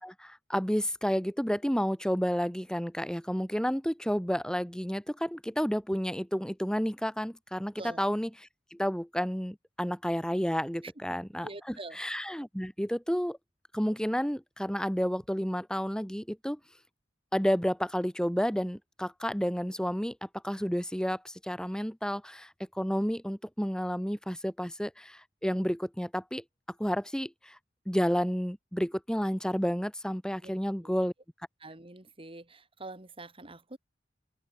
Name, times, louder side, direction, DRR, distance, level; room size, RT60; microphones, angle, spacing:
voice 1, 0.0-8.3 8.7-13.4 13.7-16.6 17.3-26.4 26.8-27.6 27.8-31.1, equal, 5° left, 3.5 m, -31 dB
voice 2, 11.4-12.0 30.4-30.5 30.8-30.9 31.6-33.8, right 2 dB, 30° right, 3.4 m, -45 dB
open air
head